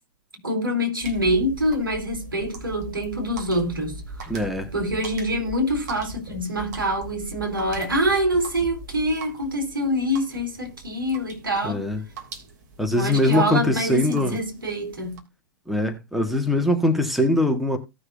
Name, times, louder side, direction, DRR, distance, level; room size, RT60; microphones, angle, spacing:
voice 1, 0.4-4.0 4.7-11.9 12.9-15.2, equal, 75° right, 4.0 m, -25 dB
sound 1, 1.0-15.2, right 3 dB, 50° right, 2.9 m, -40 dB
voice 2, 4.3-4.7 11.6-12.0 12.8-14.4 15.7-17.8, left 1 dB, ahead, 1.6 m, -22 dB
17.5 x 6.4 x 2.7 m
figure-of-eight pair, 110°, 12 cm